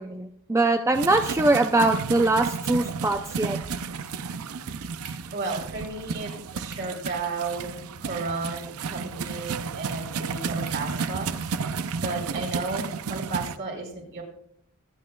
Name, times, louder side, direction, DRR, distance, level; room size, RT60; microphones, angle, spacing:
voice 1, 0.0-3.6, right 2 dB, 15° right, 5 dB, 0.4 m, -22 dB
sound 1, 0.9-13.6, right 5 dB, 80° right, 0.6 m, -32 dB
sound 2, 5.0-5.2 6.7-7.3 7.7-7.8 10.6-11.6, right 5 dB, 40° right, 3.1 m, -43 dB
voice 2, 5.3-11.3 12.0-14.2, right 3 dB, 55° right, -1 dB, 4.3 m, -33 dB
25.0 x 8.8 x 2.3 m, 0.70 s
head